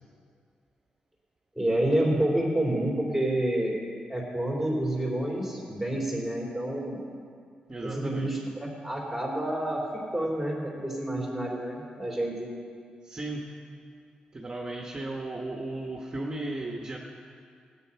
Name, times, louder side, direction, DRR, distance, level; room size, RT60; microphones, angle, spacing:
voice 1, 1.6-3.8 4.1-7.0 7.8-9.8 10.1-12.5, right 1 dB, ahead, -3 dB, 3.7 m, -28 dB
voice 2, 7.7-8.4 13.0-13.4 14.3-17.0, right 2 dB, 30° right, -1 dB, 1.2 m, -35 dB
17.0 x 9.0 x 5.7 m, 2.3 s
cardioid pair, 100°, 3 cm